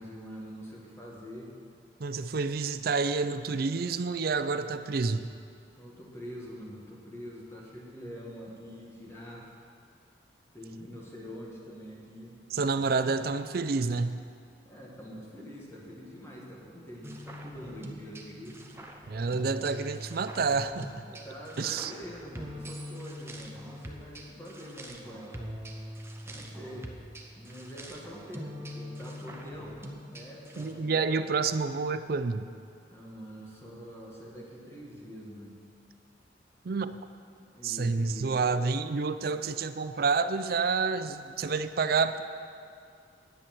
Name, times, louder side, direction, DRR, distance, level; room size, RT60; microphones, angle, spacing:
voice 1, 0.0-1.5 5.8-9.5 10.5-12.4 14.7-18.6 21.1-25.5 26.3-26.9 27.4-29.7 30.1-31.2 32.9-35.6 37.5-38.4, equal, 15° left, -4 dB, 1.9 m, -45 dB
voice 2, 2.0-5.3 12.5-14.2 19.1-20.9 21.6-21.9 30.6-32.5 36.6-37.0 37.6-42.2, right 4 dB, 55° right, 11 dB, 0.4 m, -29 dB
sound 1, 17.0-30.7, equal, 15° right, 0.7 m, -43 dB
10.5 x 8.4 x 6.1 m, 2.3 s
head